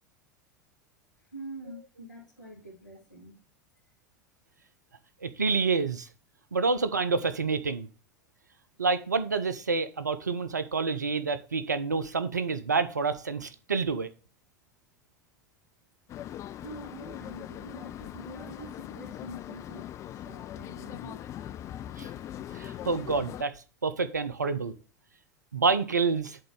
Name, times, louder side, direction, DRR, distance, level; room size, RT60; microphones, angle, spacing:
voice 1, 1.2-3.4 16.5-21.3, right 1 dB, 85° left, -7 dB, 2.6 m, -45 dB
voice 2, 5.2-6.1 6.5-7.9 8.8-14.1 22.0-22.1 22.5-23.5 23.8-24.7 25.5-26.4, right 4 dB, 80° right, 13 dB, 0.7 m, -28 dB
sound 1, 16.1-23.4, left 11 dB, 35° left, 0.5 m, -41 dB
7.8 x 3.8 x 6.6 m, 0.35 s
figure-of-eight pair, 80°, 9 cm